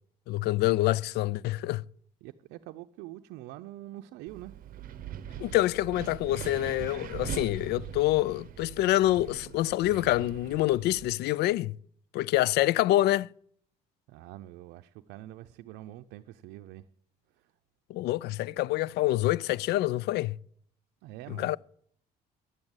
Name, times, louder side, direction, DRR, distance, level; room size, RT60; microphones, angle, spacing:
voice 1, 0.3-1.8 5.4-11.7 12.1-13.3 17.9-20.4 21.4-21.6, left 16 dB, 75° left, 0.4 m, -26 dB
voice 2, 2.2-4.6 14.1-16.9 17.3-17.5 18.5-18.7 21.0-21.6, right 15 dB, 90° right, 0.5 m, -45 dB
Wind, 4.3-11.1, right 10 dB, 55° right, 0.9 m, -42 dB
11.0 x 8.7 x 8.0 m
cardioid pair, 110°, 17 cm